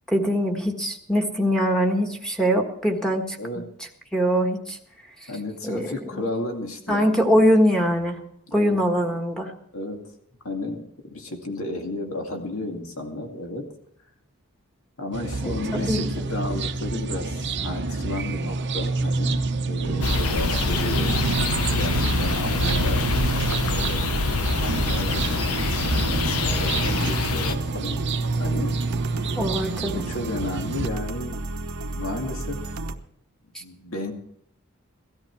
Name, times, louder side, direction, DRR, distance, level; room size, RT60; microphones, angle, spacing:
voice 1, 0.1-3.7 4.1-4.8 5.6-6.2 6.9-8.2 8.5-9.5 15.4-16.0 29.4-30.0 33.5-33.6, equal, 5° left, 1 dB, 1.5 m, -23 dB
voice 2, 5.3-7.4 8.5-8.8 9.7-10.0 10.4-13.7 15.0-21.3 21.8-28.0 28.4-28.7 29.9-31.4 31.9-32.8 33.6-34.1, left 1 dB, 65° left, 3 dB, 2.3 m, -33 dB
sound 1, 15.1-30.9, right 3 dB, 50° right, 0.8 m, -28 dB
sound 2, 19.8-33.0, right 2 dB, 75° right, 1.0 m, -34 dB
sound 3, 20.0-27.5, left 4 dB, 85° left, 1.1 m, -25 dB
18.0 x 13.0 x 4.7 m, 0.71 s
head